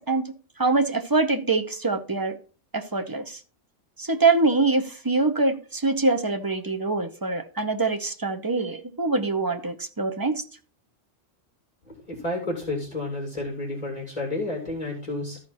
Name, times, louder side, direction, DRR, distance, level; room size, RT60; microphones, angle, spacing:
voice 1, 0.1-2.4 2.7-3.4 4.0-10.4, right 3 dB, 25° right, 7 dB, 0.5 m, -24 dB
voice 2, 11.9-15.4, left 2 dB, 30° left, 1 dB, 2.6 m, -31 dB
13.0 x 4.7 x 4.1 m, 0.37 s
omnidirectional pair, 1.3 m